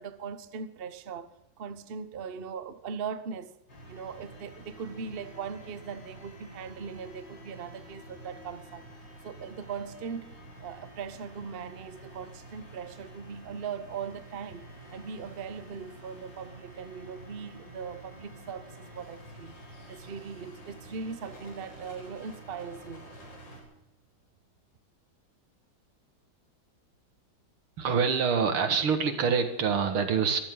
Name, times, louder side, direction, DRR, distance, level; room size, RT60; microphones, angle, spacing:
voice 1, 0.0-3.5 3.9-8.9 9.2-19.6 19.9-23.1, right 6 dB, 55° right, 0.6 m, -40 dB
sound 1, 3.7-23.6, right 1 dB, 60° left, 5.0 m, -49 dB
voice 2, 27.8-30.4, right 6 dB, 85° right, 2.6 m, -26 dB
23.5 x 14.5 x 3.8 m
omnidirectional pair, 2.3 m